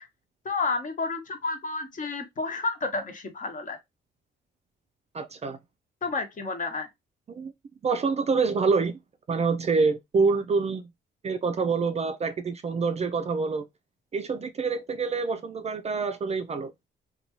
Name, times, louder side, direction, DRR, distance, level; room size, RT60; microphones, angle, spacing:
voice 1, 0.4-3.8 6.0-6.9, left 3 dB, 40° left, 0.9 m, -30 dB
voice 2, 5.1-5.6 7.3-7.5 7.8-8.9 9.3-10.8 11.2-13.7 14.1-16.7, right 4 dB, 35° right, 0.4 m, -26 dB
2.7 x 2.2 x 2.9 m
cardioid pair, 90°, 20 cm